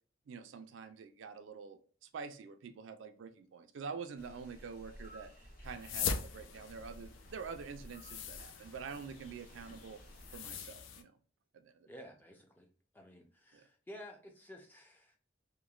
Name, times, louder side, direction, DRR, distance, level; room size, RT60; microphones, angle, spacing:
voice 1, 0.3-5.3 5.6-10.0 10.3-11.2 11.5-11.9 13.5-13.6, right 5 dB, 80° right, 0.3 m, -47 dB
sound 1, 4.2-10.4, equal, 50° left, 1.0 m, -55 dB
sound 2, 5.6-11.0, left 6 dB, 85° left, 0.3 m, -42 dB
voice 2, 11.9-12.7 12.9-15.2, left 1 dB, 10° left, 0.4 m, -52 dB
3.0 x 2.1 x 2.3 m
head